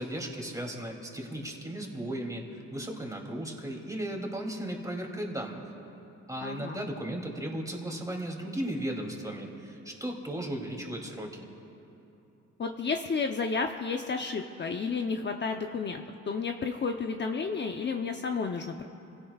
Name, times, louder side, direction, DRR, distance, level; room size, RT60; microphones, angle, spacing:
voice 1, 0.0-5.7 6.3-11.3, right 1 dB, 10° right, 0 dB, 2.9 m, -36 dB
voice 2, 6.4-6.8 12.6-18.8, left 4 dB, 35° left, 4 dB, 0.8 m, -32 dB
29.0 x 16.5 x 2.4 m, 2.9 s
cardioid pair, 90°, 30 cm